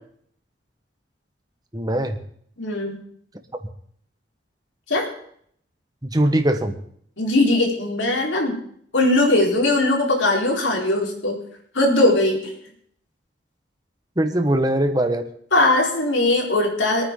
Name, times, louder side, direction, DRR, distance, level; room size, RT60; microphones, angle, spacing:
voice 1, 1.7-2.2 6.0-6.8 14.2-15.3, right 1 dB, 20° right, 6 dB, 1.4 m, -21 dB
voice 2, 2.6-3.0 4.9-5.1 7.2-8.5 8.9-11.4 11.7-12.5 15.5-17.1, left 2 dB, 85° left, 0 dB, 4.5 m, -19 dB
25.0 x 9.6 x 4.0 m, 0.63 s
head